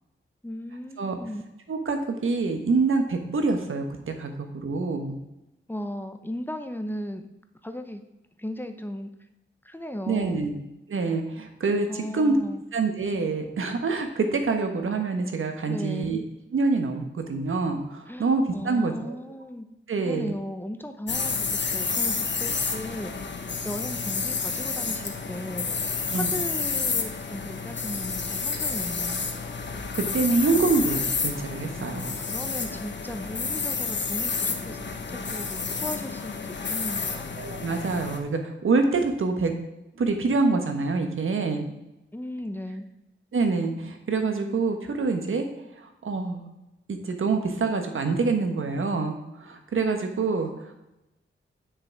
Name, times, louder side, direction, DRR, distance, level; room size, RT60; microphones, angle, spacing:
voice 1, 0.4-1.4 5.7-7.2 7.6-8.0 8.4-9.1 9.6-10.5 11.9-12.6 15.7-16.1 18.1-19.7 20.0-23.3 23.6-25.7 26.1-29.3 31.9-37.2 42.1-42.9, left 1 dB, 10° left, 7 dB, 0.8 m, -36 dB
voice 2, 1.7-5.2 10.1-10.5 10.9-12.4 12.7-16.2 16.5-19.1 19.9-20.3 26.1-26.3 29.9-32.1 37.4-39.5 40.0-41.6 43.3-45.5 45.8-46.5 46.9-50.7, right 3 dB, 80° right, 5 dB, 1.4 m, -26 dB
sound 1, 21.1-38.2, left 5 dB, 60° left, 1.2 m, -30 dB
9.8 x 6.5 x 4.6 m, 0.94 s
wide cardioid pair, 90°, 21 cm